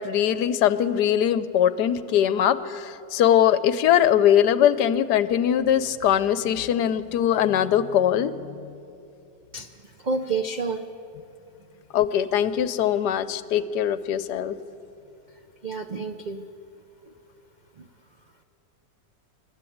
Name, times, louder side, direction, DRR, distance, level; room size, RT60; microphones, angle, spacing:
voice 1, 0.0-8.3 11.9-14.6, left 10 dB, 75° left, 14 dB, 1.2 m, -21 dB
voice 2, 9.5-10.8 15.6-16.5 17.8-17.9, right 4 dB, 65° right, 6 dB, 0.4 m, -30 dB
26.5 x 12.0 x 8.6 m, 2.7 s
omnidirectional pair, 1.9 m